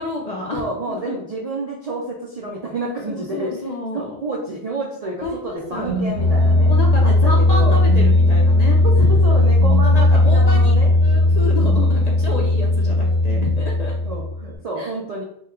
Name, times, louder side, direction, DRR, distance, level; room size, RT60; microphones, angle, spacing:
voice 1, 0.0-0.6 1.1-1.2 3.1-4.2 5.2-6.0 6.7-9.1 9.8-14.0 14.8-14.9, left 2 dB, 55° left, -1 dB, 0.5 m, -29 dB
voice 2, 0.5-3.6 3.9-6.7 7.0-7.8 8.8-10.9 14.0-15.2, right 2 dB, 60° right, -1 dB, 0.4 m, -29 dB
sound 1, 5.7-14.5, left 2 dB, 75° right, 1.2 m, -16 dB
3.0 x 2.1 x 3.5 m, 0.70 s
omnidirectional pair, 1.1 m